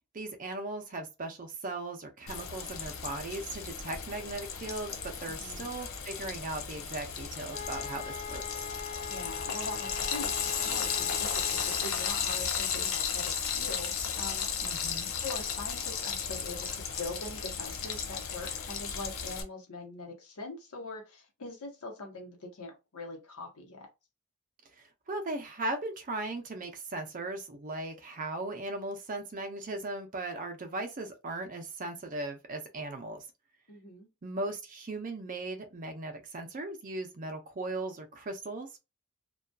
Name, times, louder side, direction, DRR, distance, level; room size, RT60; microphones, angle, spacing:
voice 1, 0.0-8.4 14.6-15.1 24.8-33.2 34.2-38.8, right 2 dB, 35° right, 0.5 m, -38 dB
Frying (food), 2.3-19.4, left 7 dB, 60° left, 0.5 m, -35 dB
voice 2, 5.3-5.7 9.0-14.7 15.1-23.9 33.7-34.1, left 2 dB, 80° left, 0.9 m, -43 dB
sound 1, 7.5-12.2, left 6 dB, 35° left, 0.8 m, -41 dB
2.6 x 2.3 x 2.2 m
head